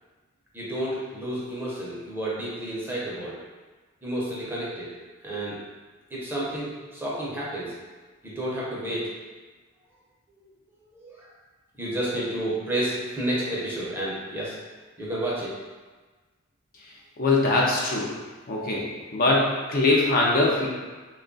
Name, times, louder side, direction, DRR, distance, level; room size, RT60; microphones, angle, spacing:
voice 1, 0.5-3.4 4.0-4.9 5.2-5.6 6.1-7.7 8.2-9.1 10.9-11.3 11.7-14.6 15.0-15.5, right 1 dB, 10° right, -7 dB, 0.7 m, -30 dB
voice 2, 17.2-18.1 18.5-18.8 19.1-20.7, left 2 dB, 45° left, -3 dB, 0.5 m, -22 dB
3.1 x 2.3 x 3.8 m, 1.3 s
head